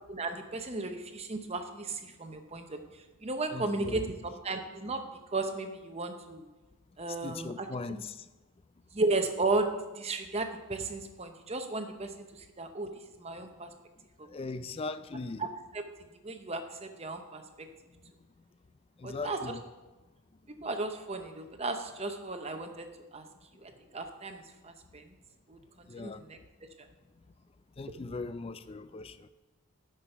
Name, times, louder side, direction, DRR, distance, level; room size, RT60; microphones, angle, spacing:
voice 1, 0.1-2.8 3.2-6.5 7.0-8.0 8.9-9.7 10.0-12.9 13.2-13.7 15.4-15.5 15.7-15.8 16.2-17.7 19.0-19.5 20.6-23.2 23.6-25.1 25.5-26.4, right 3 dB, 30° right, 6 dB, 0.8 m, -35 dB
voice 2, 3.5-4.2 7.2-8.2 14.3-15.4 19.0-19.6 25.9-26.2 27.8-29.3, left 3 dB, 25° left, 13 dB, 0.3 m, -39 dB
9.9 x 5.9 x 5.9 m, 1.1 s
head